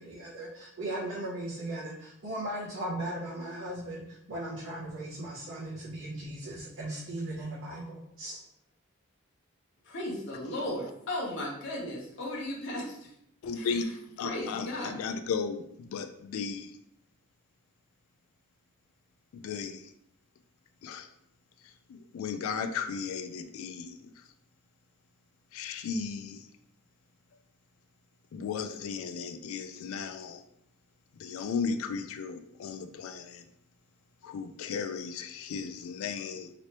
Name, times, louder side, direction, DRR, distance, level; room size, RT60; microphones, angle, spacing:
voice 1, 0.0-8.4, right 1 dB, 70° right, -8 dB, 0.7 m, -37 dB
voice 2, 9.8-13.1 13.5-13.7 14.2-15.0, left 1 dB, 60° left, -4 dB, 0.7 m, -36 dB
voice 3, 13.4-16.7 19.3-19.9 20.8-21.1 21.9-24.1 25.5-26.5 28.3-30.4 31.2-33.4 34.2-36.5, left 5 dB, 80° left, 8 dB, 0.3 m, -35 dB
3.0 x 2.9 x 2.9 m, 0.75 s
head